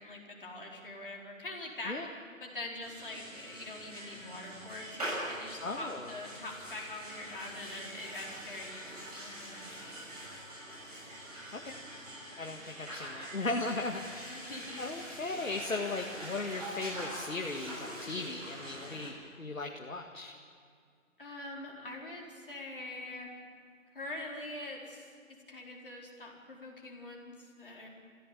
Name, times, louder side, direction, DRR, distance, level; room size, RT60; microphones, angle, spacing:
voice 1, 0.0-2.0 2.4-9.7 14.3-14.8 21.2-23.3 23.9-27.9, left 2 dB, 40° left, -2 dB, 4.5 m, -44 dB
sound 1, 2.8-19.1, right 1 dB, 30° right, 7.5 m, -44 dB
voice 2, 5.6-6.1 11.5-11.7 12.4-14.4 14.8-20.3, left 3 dB, 75° left, 2 dB, 2.0 m, -37 dB
28.0 x 16.0 x 8.9 m, 2.2 s
figure-of-eight pair, 180°, 40 cm